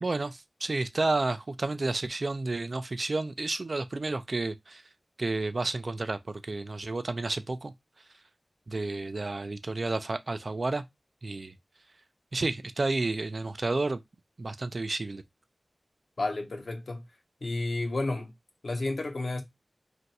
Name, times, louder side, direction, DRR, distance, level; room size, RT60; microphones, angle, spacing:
voice 1, 0.0-4.8 5.2-7.7 8.7-10.8 11.2-11.5 12.3-14.0 14.4-15.2, right 2 dB, 55° right, 0.3 m, -31 dB
voice 2, 16.2-17.0 17.4-18.3 18.6-19.4, left 2 dB, 70° left, 0.7 m, -31 dB
2.5 x 2.2 x 4.0 m
wide cardioid pair, 65°, 0 cm